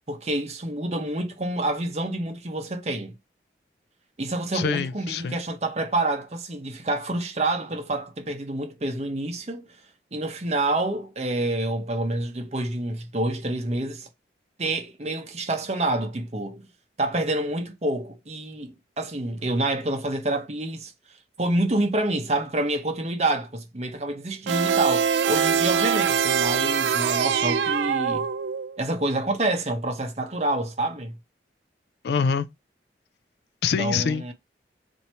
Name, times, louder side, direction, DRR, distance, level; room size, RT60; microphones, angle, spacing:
voice 1, 0.1-3.1 4.2-9.8 10.1-14.1 14.6-16.6 17.0-20.9 21.4-28.3 28.8-31.2 33.8-34.3, right 2 dB, 35° right, 0.7 m, -27 dB
voice 2, 4.5-5.4 32.0-32.5 33.6-34.3, left 6 dB, 65° left, 0.3 m, -25 dB
sound 1, 24.5-28.8, right 7 dB, 75° right, 0.3 m, -23 dB
3.0 x 2.7 x 4.3 m
head